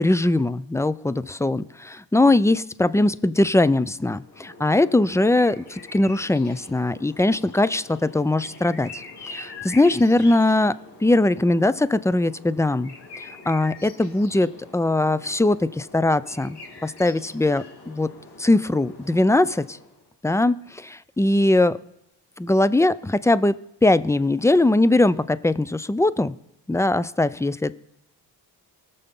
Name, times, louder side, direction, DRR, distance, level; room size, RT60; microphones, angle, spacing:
voice 1, 0.0-10.8 11.0-18.1 18.4-19.8 20.2-21.8 22.4-23.5 23.8-26.3 26.7-27.8, left 2 dB, 5° left, 16 dB, 0.4 m, -21 dB
sound 1, 4.1-20.0, left 3 dB, 60° left, 3.3 m, -44 dB
19.5 x 6.9 x 3.7 m, 0.85 s
cardioid pair, 65°, 44 cm